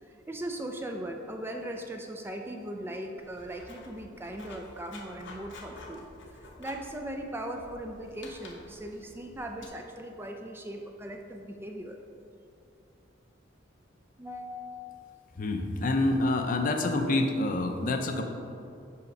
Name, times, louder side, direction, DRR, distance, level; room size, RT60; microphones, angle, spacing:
voice 1, 0.0-6.0 6.3-12.0 14.2-14.9, right 1 dB, 10° right, 3 dB, 0.4 m, -39 dB
Writing, 3.2-9.7, left 2 dB, 65° left, 0.9 m, -50 dB
voice 2, 15.4-18.2, left 2 dB, 45° left, 5 dB, 0.6 m, -27 dB
5.7 x 5.1 x 5.2 m, 2.6 s
head